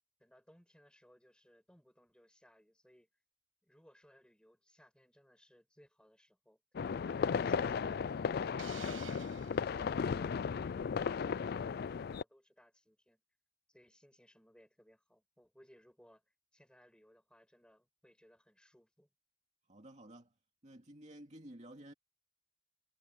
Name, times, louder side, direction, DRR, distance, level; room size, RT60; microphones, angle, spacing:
voice 1, 0.2-3.1 3.6-6.6 7.0-8.1 9.6-13.2 13.7-19.1, equal, 5° left, 6.6 m, -64 dB
sound 1, 6.8-12.2, left 6 dB, 55° left, 0.3 m, -35 dB
Hiss, 8.6-9.9, right 9 dB, 85° right, 1.3 m, -52 dB
voice 2, 19.7-20.3 20.6-21.9, right 1 dB, 35° right, 2.4 m, -53 dB
head